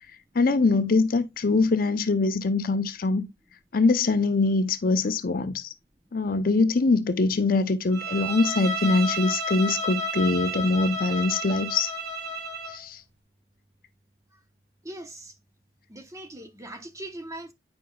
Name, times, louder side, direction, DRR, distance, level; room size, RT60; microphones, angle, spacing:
voice 1, 0.3-3.3 3.7-5.7 6.1-11.9 12.7-13.0, left 3 dB, 55° left, 0.6 m, -23 dB
Bowed string instrument, 7.9-12.8, right 1 dB, 65° right, 1.4 m, -31 dB
voice 2, 14.8-15.4 15.9-17.5, right 1 dB, 20° right, 0.9 m, -40 dB
9.3 x 5.2 x 2.3 m
head